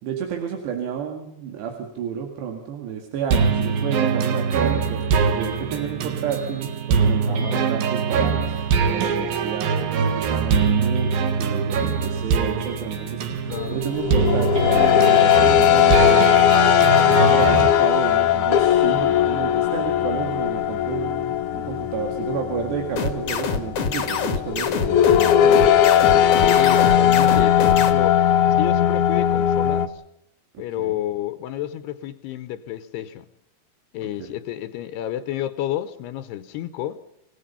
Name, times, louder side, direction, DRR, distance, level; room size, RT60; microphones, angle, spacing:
voice 1, 0.0-16.3 17.0-25.8 26.1-26.3 30.5-31.0 34.2-34.4, right 7 dB, 85° right, 4.3 m, -31 dB
sound 1, 3.3-17.7, right 6 dB, 65° right, 3.3 m, -23 dB
voice 2, 7.2-7.7 13.5-13.8 26.4-28.2 28.5-30.0 30.6-33.3 33.9-37.0, left 12 dB, 80° left, 3.0 m, -30 dB
sound 2, 13.5-29.9, left 10 dB, 65° left, 2.1 m, -18 dB
sound 3, 23.0-27.9, left 6 dB, 50° left, 2.0 m, -25 dB
28.0 x 17.5 x 5.7 m
omnidirectional pair, 4.8 m